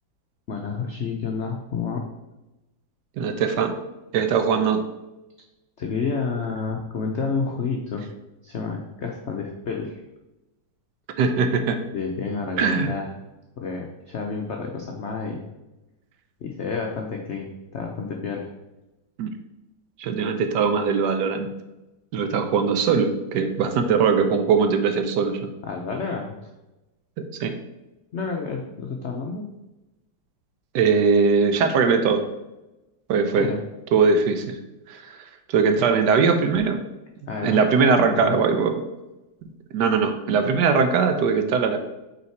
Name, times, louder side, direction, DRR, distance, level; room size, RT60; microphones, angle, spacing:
voice 1, 0.5-2.1 5.8-8.0 8.4-10.0 11.9-13.1 13.6-15.4 16.4-18.5 25.6-26.5 28.1-29.5 33.4-33.6 37.3-37.6 38.0-38.4, left 4 dB, 90° left, 1 dB, 0.6 m, -29 dB
voice 2, 3.2-3.7 4.1-4.8 11.2-11.8 12.6-12.9 19.2-19.3 20.0-21.5 22.1-25.4 27.4-27.6 30.7-32.2 33.1-33.5 33.9-34.6 34.9-35.2 35.5-36.8 37.4-38.8 39.7-41.8, right 5 dB, 75° right, 7 dB, 1.1 m, -20 dB
5.5 x 4.0 x 4.5 m, 1.0 s
omnidirectional pair, 2.0 m